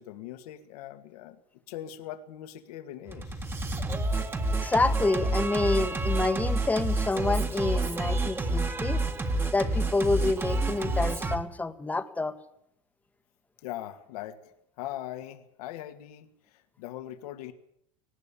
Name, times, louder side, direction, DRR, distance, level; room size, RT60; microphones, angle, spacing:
voice 1, 0.0-1.4 1.7-3.5 13.6-14.4 14.8-17.5, left 13 dB, 75° left, 8 dB, 2.2 m, -41 dB
Singing, 3.1-11.4, right 2 dB, 10° right, 1.6 m, -29 dB
voice 2, 4.6-9.0 9.5-12.4, left 3 dB, 10° left, 10 dB, 1.3 m, -28 dB
18.5 x 18.0 x 8.6 m, 0.73 s
supercardioid pair, 145°, 20 cm